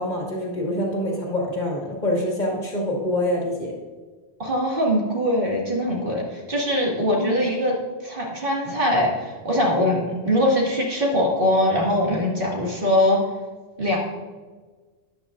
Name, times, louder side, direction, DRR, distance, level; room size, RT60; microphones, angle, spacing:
voice 1, 0.0-3.7 7.1-7.3, left 1 dB, 45° left, -2 dB, 2.0 m, -25 dB
voice 2, 4.4-7.7 8.0-13.2 13.8-14.0, left 1 dB, 55° right, -2 dB, 2.2 m, -22 dB
13.0 x 9.9 x 2.5 m, 1.4 s
omnidirectional pair, 1.1 m